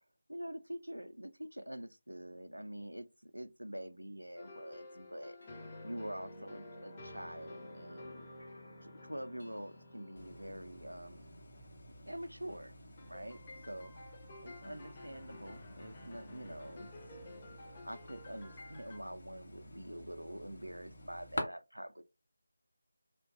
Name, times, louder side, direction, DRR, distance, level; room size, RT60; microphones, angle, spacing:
voice 1, 0.3-5.4 5.8-8.3 8.8-11.2 12.0-12.7 13.0-13.9 14.4-17.2 17.6-22.0, equal, 85° right, 0.3 m, -46 dB
sound 1, 4.4-12.1 13.0-19.0, left 2 dB, 25° left, 0.5 m, -53 dB
sound 2, 5.4-12.3, equal, 85° left, 0.6 m, -57 dB
sound 3, 10.1-21.4, left 1 dB, 45° left, 0.8 m, -49 dB
2.6 x 2.1 x 2.4 m
figure-of-eight pair, 160°, 0 cm